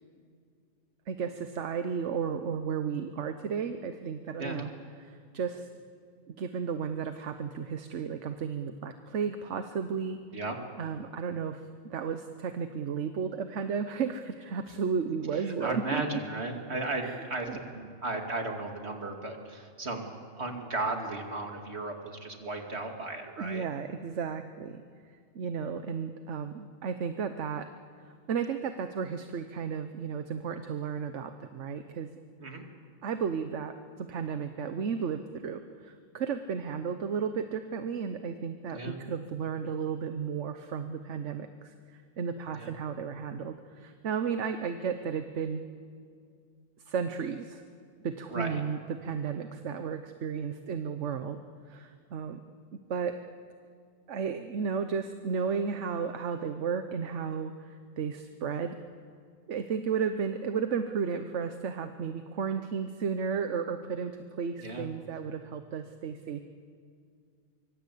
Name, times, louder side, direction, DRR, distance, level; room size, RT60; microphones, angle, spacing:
voice 1, 1.1-4.7 5.0-5.7 6.3-10.2 10.8-16.2 17.0-17.1 17.5-17.6 23.4-24.8 25.3-27.7 28.3-32.1 33.0-45.6 46.9-47.6 48.0-51.4 51.7-52.4 52.9-53.2 54.1-58.7 59.5-66.4, right 6 dB, 80° right, 8 dB, 1.3 m, -33 dB
voice 2, 15.3-23.6 32.4-32.7 38.7-39.0 42.5-42.7 48.3-48.6 64.6-64.9, right 2 dB, 65° right, 3 dB, 2.8 m, -35 dB
24.5 x 23.5 x 8.5 m, 2.3 s
omnidirectional pair, 1.2 m